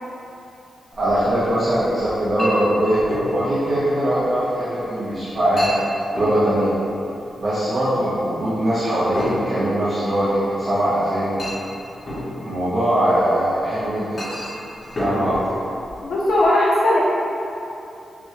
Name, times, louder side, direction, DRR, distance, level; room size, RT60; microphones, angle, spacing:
Chink clink, 0.9-16.5, equal, 40° left, 1.2 m, -33 dB
voice 1, 0.9-3.0 3.3-5.7 6.1-6.7 7.4-11.3 12.4-14.2 15.0-15.5, right 1 dB, 40° right, -12 dB, 1.0 m, -21 dB
voice 2, 16.0-17.0, left 1 dB, 80° left, -6 dB, 0.7 m, -18 dB
6.0 x 2.4 x 3.1 m, 2.7 s
wide cardioid pair, 125°, 0 cm